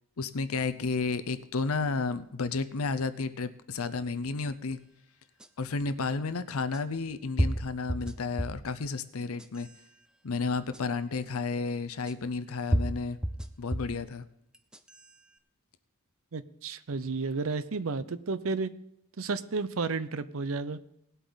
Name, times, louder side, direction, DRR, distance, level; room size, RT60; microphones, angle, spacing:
voice 1, 0.2-4.8 5.6-9.7 10.2-13.2 13.6-14.2, left 4 dB, 70° left, 13 dB, 0.7 m, -32 dB
sound 1, 5.4-5.5 6.7-6.8 7.4-8.7 9.2-9.8 10.7-10.8 12.1-12.2 12.7-14.0 14.5-15.1, equal, 5° right, 0.4 m, -31 dB
voice 2, 16.3-18.7 19.2-20.8, right 4 dB, 65° right, 15 dB, 0.6 m, -32 dB
18.5 x 8.1 x 4.0 m, 0.79 s
head